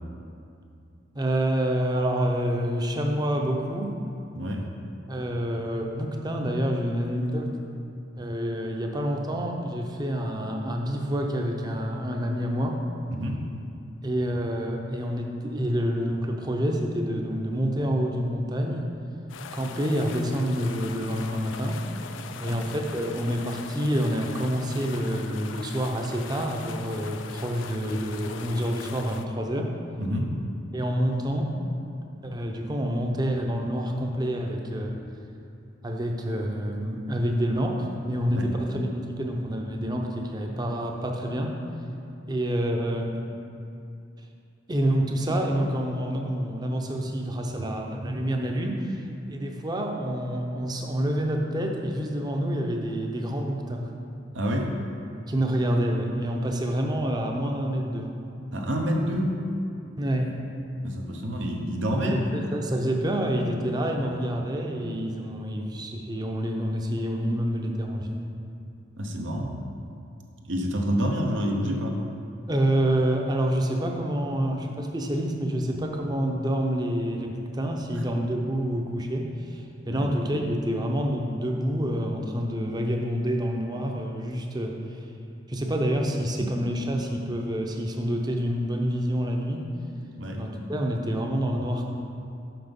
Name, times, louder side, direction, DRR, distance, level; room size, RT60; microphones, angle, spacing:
voice 1, 1.1-4.0 5.1-7.5 8.2-12.8 14.0-18.9 19.5-21.8 22.4-29.7 30.7-31.5 32.2-35.0 35.8-41.6 42.3-43.1 44.7-53.9 55.3-58.1 60.0-60.4 62.0-68.2 72.5-85.0 85.5-89.7 90.4-91.9, equal, 20° right, 2 dB, 0.6 m, -27 dB
sound 1, 19.3-29.3, left 6 dB, 90° left, 0.4 m, -41 dB
voice 2, 30.0-30.3 38.3-38.5 54.3-54.7 58.5-59.4 60.8-62.2 69.0-69.5 70.4-72.0 79.8-80.1 90.2-90.6, equal, 85° right, 1 dB, 0.9 m, -28 dB
5.9 x 5.8 x 5.3 m, 2.5 s
head